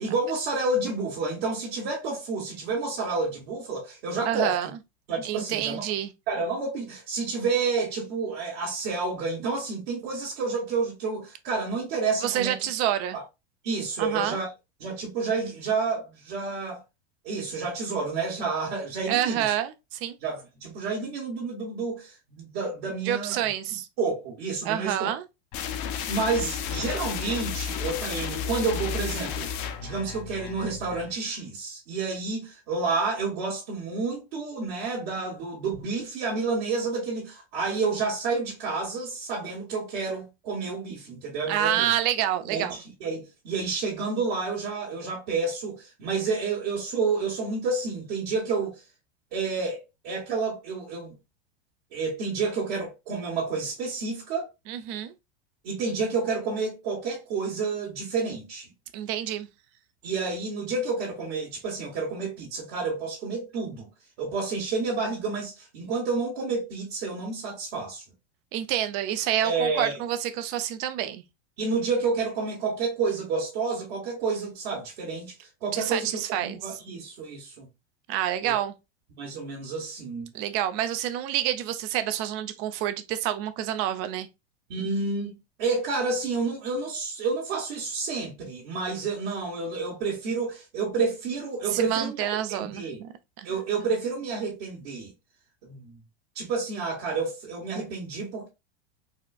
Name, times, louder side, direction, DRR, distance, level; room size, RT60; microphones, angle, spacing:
voice 1, 0.0-4.6 5.1-5.8 6.3-12.6 13.1-13.2 13.6-14.5 14.8-16.8 17.2-19.5 20.2-23.5 24.0-25.1 26.1-29.5 29.8-41.9 42.5-48.8 49.3-51.1 51.9-54.5 55.6-58.7 60.0-63.9 64.2-68.0 69.4-70.0 71.6-77.7 78.4-78.6 79.2-80.3 84.7-93.0 93.4-95.1 95.6-96.0 96.3-98.5, right 4 dB, 65° right, 1.5 m, -30 dB
voice 2, 4.3-4.7 5.2-6.1 12.2-13.2 14.0-14.4 19.1-20.2 23.1-23.9 24.6-25.2 41.5-42.7 54.7-55.1 58.9-59.5 68.5-71.2 75.7-76.6 78.1-78.7 80.3-84.3 91.7-93.1 93.4-93.5, right 11 dB, 45° right, 0.6 m, -28 dB
sound 1, 25.5-31.2, left 7 dB, 50° left, 0.7 m, -33 dB
4.2 x 2.4 x 2.3 m
hypercardioid pair, 105°, 32 cm